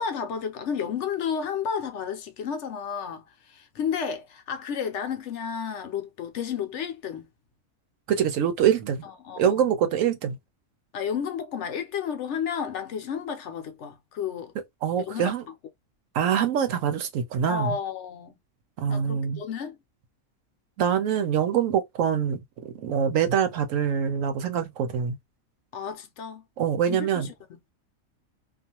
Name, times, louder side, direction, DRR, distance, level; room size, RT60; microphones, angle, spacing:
voice 1, 0.0-7.3 9.0-9.7 10.9-14.5 15.0-15.3 17.5-18.4 18.9-19.8 25.7-26.4 26.9-27.7, left 7 dB, 70° left, 0.9 m, -32 dB
voice 2, 8.1-9.0 9.4-10.4 14.8-15.4 16.1-17.8 18.8-19.4 20.8-25.2 26.6-27.3, right 8 dB, 80° right, 1.0 m, -24 dB
2.5 x 2.4 x 2.8 m
omnidirectional pair, 1.4 m